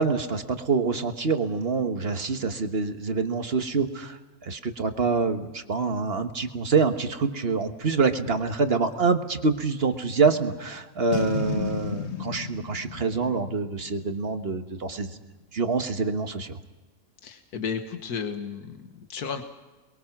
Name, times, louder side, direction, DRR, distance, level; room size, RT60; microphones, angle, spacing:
voice 1, 0.0-15.1 15.5-16.6, right 4 dB, 40° right, 7 dB, 1.5 m, -26 dB
Boom, 11.1-14.4, left 6 dB, 50° left, 1.4 m, -33 dB
voice 2, 17.2-19.4, left 6 dB, 80° left, 6 dB, 2.0 m, -33 dB
28.0 x 22.0 x 6.0 m, 1.2 s
omnidirectional pair, 1.6 m